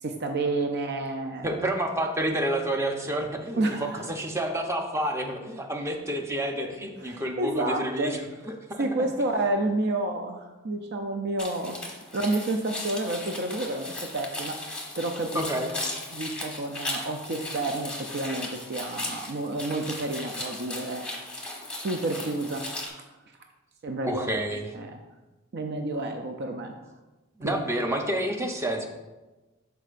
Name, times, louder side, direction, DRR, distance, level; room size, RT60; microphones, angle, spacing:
voice 1, 0.0-1.6 3.6-4.0 7.1-8.1 8.8-11.8 12.1-15.4 16.1-21.1 21.7-22.7 23.8-24.3 24.7-25.0 25.5-26.7 27.4-27.6, right 2 dB, 55° right, 4 dB, 0.5 m, -30 dB
voice 2, 1.4-8.2 8.5-8.8 15.3-15.7 24.0-24.7 27.4-28.9, right 1 dB, 15° right, 3 dB, 0.7 m, -29 dB
sound 1, 11.4-22.9, left 2 dB, 5° left, 1.1 m, -37 dB
11.5 x 4.6 x 2.5 m, 1.1 s
head